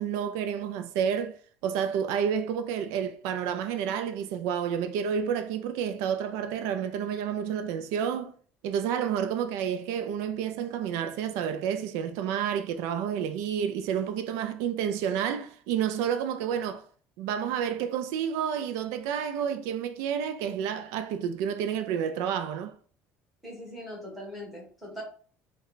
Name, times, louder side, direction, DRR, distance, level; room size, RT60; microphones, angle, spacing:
voice 1, 0.0-8.3 8.6-16.9 17.2-22.8, right 8 dB, 80° right, 0.3 m, -30 dB
voice 2, 23.4-25.0, equal, ahead, 1.3 m, -41 dB
3.2 x 2.1 x 3.9 m
cardioid pair, 175°, 5 cm